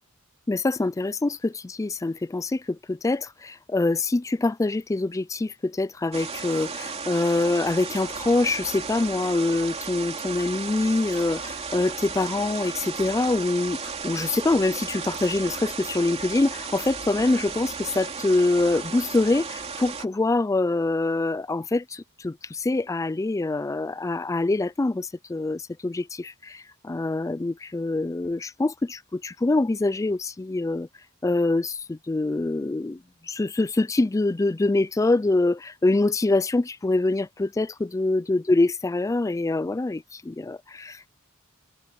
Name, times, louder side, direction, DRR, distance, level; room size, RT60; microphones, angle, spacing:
voice 1, 0.5-30.9 31.2-41.0, left 2 dB, 15° left, 0.3 m, -25 dB
sound 1, 6.1-20.0, right 5 dB, 30° right, 2.9 m, -34 dB
head